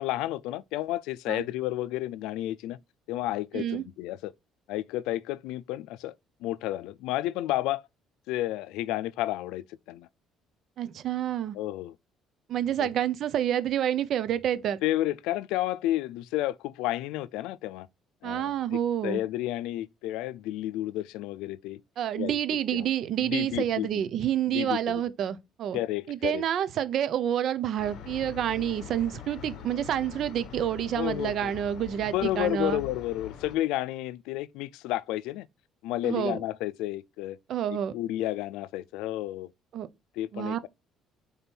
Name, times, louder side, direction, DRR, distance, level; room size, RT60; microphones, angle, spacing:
voice 1, 0.0-2.8 3.1-4.3 4.7-6.1 6.4-7.9 8.3-10.1 11.5-11.9 12.8-12.9 14.8-17.9 18.2-18.5 19.0-21.8 22.2-22.4 22.7-22.9 23.2-24.0 24.5-25.0 25.7-26.4 31.0-31.5 32.0-35.5 35.8-37.4 37.7-39.5 40.2-40.7, left 15 dB, 90° left, 0.4 m, -31 dB
voice 2, 10.8-11.6 12.5-14.8 18.2-19.2 22.0-25.8 26.1-32.8 36.0-36.4 37.5-37.9 39.7-39.9 40.3-40.6, right 10 dB, 50° right, 0.6 m, -28 dB
sound 1, 27.8-33.6, left 9 dB, 55° left, 1.0 m, -43 dB
5.3 x 4.1 x 4.4 m
cardioid pair, 150°, 0 cm